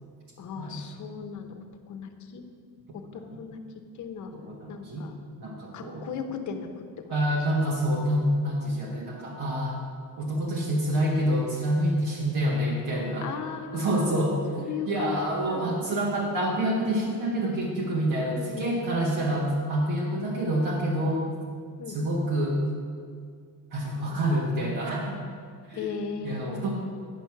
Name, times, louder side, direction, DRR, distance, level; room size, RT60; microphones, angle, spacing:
voice 1, 0.4-2.4 2.9-3.6 3.9-4.3 4.7-5.2 5.7-7.2 13.2-14.2 14.6-15.8 17.0-17.1 18.2-18.8 21.8-22.0 24.1-24.2 25.7-26.7, left 6 dB, 50° left, 6 dB, 0.9 m, -37 dB
voice 2, 4.5-5.1 5.4-6.0 7.1-9.8 10.2-13.3 13.7-14.4 14.9-21.2 21.9-22.6 23.7-25.2 25.7-25.9 26.2-26.7, right 1 dB, 65° right, -3 dB, 1.6 m, -27 dB
10.0 x 6.1 x 5.8 m, 2.1 s
cardioid pair, 150°, 38 cm